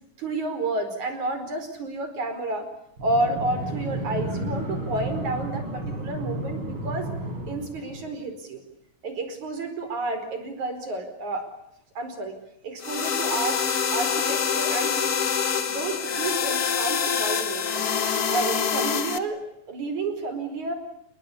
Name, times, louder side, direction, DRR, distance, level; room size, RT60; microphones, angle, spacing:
voice 1, 0.2-2.7 3.0-7.1 7.5-8.6 9.0-11.5 12.0-12.3 12.6-13.6 13.9-15.3 15.7-17.9 18.3-19.4 19.7-20.7, right 2 dB, 65° right, 8 dB, 6.1 m, -30 dB
sound 1, 3.0-8.2, right 1 dB, 40° right, 6.4 m, -32 dB
sound 2, 12.8-19.2, left 7 dB, 45° left, 1.3 m, -25 dB
29.0 x 21.5 x 8.5 m, 0.77 s
omnidirectional pair, 3.6 m